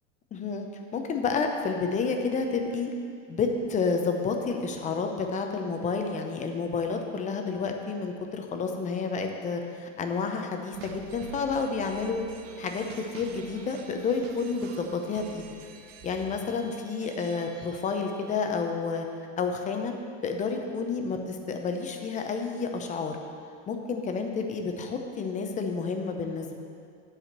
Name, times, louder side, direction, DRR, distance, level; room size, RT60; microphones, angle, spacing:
voice 1, 0.3-0.7 0.9-2.9 3.3-12.2 12.6-12.8 13.1-15.5 16.0-19.1 19.4-19.9 20.2-23.2 23.7-26.6, left 4 dB, 20° left, 4 dB, 0.7 m, -30 dB
sound 1, 10.7-18.6, right 5 dB, 45° right, 0.8 m, -48 dB
9.3 x 5.0 x 7.3 m, 2.3 s
supercardioid pair, 150°, 36 cm